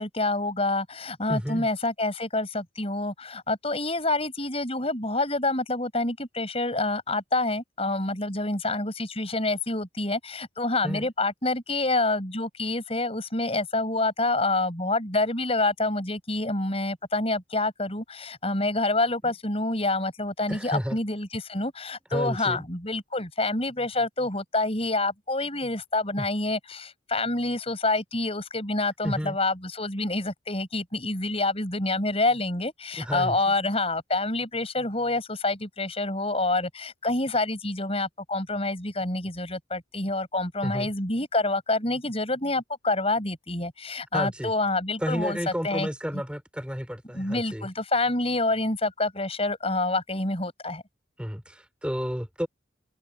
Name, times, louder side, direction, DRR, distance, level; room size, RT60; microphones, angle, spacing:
voice 1, 0.0-45.4 45.6-45.9 46.1-46.2 47.1-50.8, left 2 dB, 30° left, 7.5 m, -27 dB
voice 2, 1.3-1.7 10.8-11.1 19.2-19.3 20.5-21.0 22.1-22.6 26.2-26.3 29.0-29.4 33.0-33.5 40.6-40.9 44.1-44.5 45.0-47.7 51.2-52.5, equal, 5° right, 5.6 m, -31 dB
head